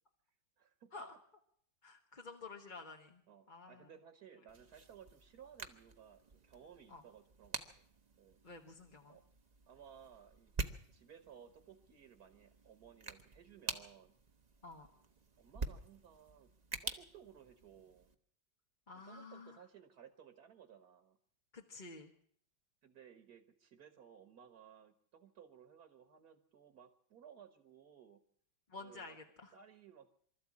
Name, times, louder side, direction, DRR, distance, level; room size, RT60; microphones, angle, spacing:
voice 1, 0.6-1.0 3.3-7.6 8.2-8.4 9.1-9.2 9.7-10.5 10.9-14.1 15.4-16.5 16.8-18.1 18.9-21.2 22.8-28.2 28.8-29.2 29.5-30.1, right 8 dB, 55° right, 8 dB, 1.9 m, -59 dB
voice 2, 1.8-3.2 3.5-3.9 6.9-7.0 8.4-9.2 14.6-14.9 18.9-19.6 21.5-22.1 28.7-29.5, left 3 dB, 30° left, 2 dB, 1.2 m, -51 dB
sound 1, 4.5-18.1, right 3 dB, 30° right, 0.9 m, -48 dB
24.0 x 13.5 x 8.5 m, 0.63 s
omnidirectional pair, 2.0 m